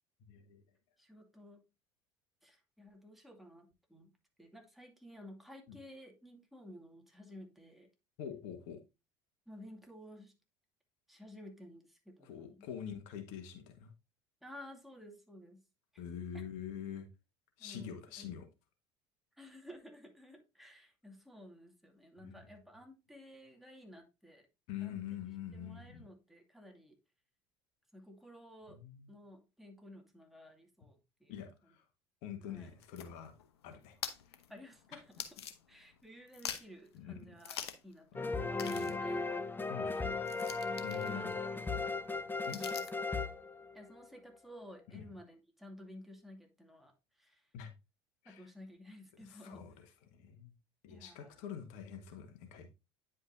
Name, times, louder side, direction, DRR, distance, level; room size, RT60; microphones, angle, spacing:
voice 1, 0.3-0.6 5.7-5.8 8.2-8.8 12.2-13.9 16.0-17.1 17.6-18.4 22.2-22.4 24.7-26.0 28.7-29.1 31.3-31.8 32.2-33.3 33.6-34.0 34.3-34.4 36.9-37.2 38.6-39.0 39.7-39.9 40.8-41.3 42.5-42.6 44.9-45.0 47.5-47.7 48.2-48.5 49.2-50.5 50.8-52.7, left 8 dB, 70° left, 1.3 m, -45 dB
voice 2, 1.0-1.6 2.4-4.1 4.4-7.9 9.5-10.3 11.1-12.7 14.4-15.6 15.9-16.0 17.6-18.3 19.4-24.5 24.8-25.0 25.5-27.0 27.9-28.8 29.1-31.8 32.4-32.7 34.5-35.2 35.7-37.6 37.8-39.2 39.9-40.2 40.9-41.3 41.9-42.0 42.5-42.8 43.7-47.5 48.3-49.6 50.9-51.5, left 1 dB, ahead, 2.3 m, -54 dB
sound 1, 32.6-36.0 36.3-36.9 37.4-37.9 38.2-38.3 38.6-43.1, left 9 dB, 90° left, 0.8 m, -47 dB
sound 2, 38.2-44.1, left 3 dB, 15° left, 0.9 m, -37 dB
9.7 x 5.3 x 2.6 m
hypercardioid pair, 70°, 13 cm